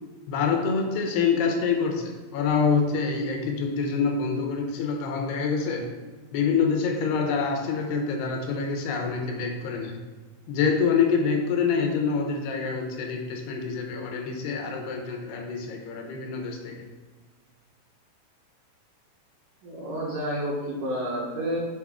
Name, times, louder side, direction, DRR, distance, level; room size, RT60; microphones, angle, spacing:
voice 1, 0.3-5.9 6.3-10.0 10.5-16.8, left 5 dB, 80° left, 3 dB, 2.7 m, -26 dB
voice 2, 19.6-21.6, equal, 70° right, -5 dB, 2.2 m, -30 dB
7.6 x 3.8 x 3.6 m, 1.4 s
omnidirectional pair, 4.7 m